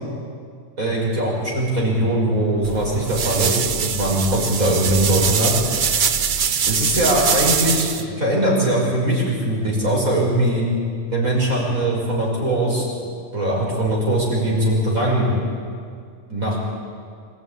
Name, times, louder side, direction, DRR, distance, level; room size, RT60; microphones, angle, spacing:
voice 1, 0.8-5.6 6.7-10.6 11.1-12.8 13.3-15.3 16.3-16.7, right 1 dB, 85° right, -3 dB, 6.7 m, -21 dB
sound 1, 2.6-8.0, right 7 dB, 45° right, 0.7 m, -22 dB
25.5 x 14.0 x 9.9 m, 2.2 s
omnidirectional pair, 1.4 m